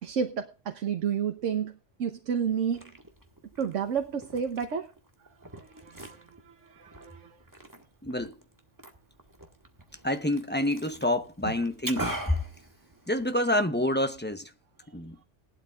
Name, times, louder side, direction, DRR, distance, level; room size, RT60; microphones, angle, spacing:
voice 1, 0.0-2.9 3.6-4.9 5.6-7.4 14.8-14.9, right 7 dB, 85° right, 1.3 m, -31 dB
Liquid, 2.5-13.5, right 1 dB, 15° right, 1.7 m, -43 dB
voice 2, 8.0-8.4 10.0-12.4 13.1-14.5 14.9-15.2, left 1 dB, 10° left, 0.8 m, -28 dB
18.0 x 12.0 x 2.4 m
omnidirectional pair, 1.2 m